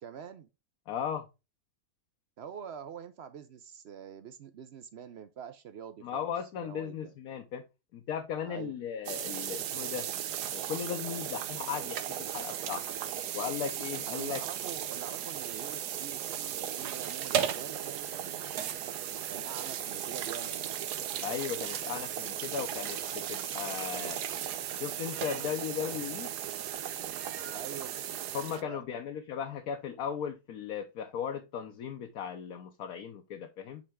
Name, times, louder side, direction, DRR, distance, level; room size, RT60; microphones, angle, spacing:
voice 1, 0.0-0.5 2.4-6.3 6.6-7.1 8.4-8.8 14.1-18.5 19.3-20.8 27.5-27.9 28.6-28.8, right 7 dB, 65° right, 0.6 m, -45 dB
voice 2, 0.9-1.2 6.0-7.6 7.9-10.1 10.5-12.0 12.3-12.8 13.3-14.4 21.2-24.2 24.8-26.3 28.3-33.8, left 8 dB, 70° left, 1.2 m, -37 dB
Kitchen Ambiance Sound, 9.1-28.6, right 10 dB, 90° right, 1.3 m, -36 dB
8.5 x 3.4 x 3.5 m
omnidirectional pair, 1.7 m